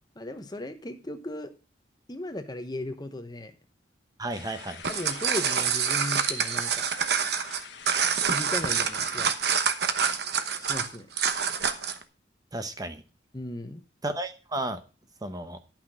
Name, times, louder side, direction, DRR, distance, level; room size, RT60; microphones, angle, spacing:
voice 1, 0.2-1.5 2.1-3.5 4.9-6.8 8.2-9.3 10.6-11.1 13.3-13.8, left 1 dB, 20° left, 9 dB, 0.9 m, -36 dB
voice 2, 4.2-4.8 12.5-13.0 14.0-14.8 15.2-15.6, right 1 dB, 20° right, 9 dB, 0.8 m, -33 dB
sound 1, 4.3-9.6, left 7 dB, 65° left, 1.3 m, -46 dB
sound 2, 4.7-12.0, right 6 dB, 60° right, 1.0 m, -26 dB
11.5 x 5.9 x 6.1 m, 0.33 s
head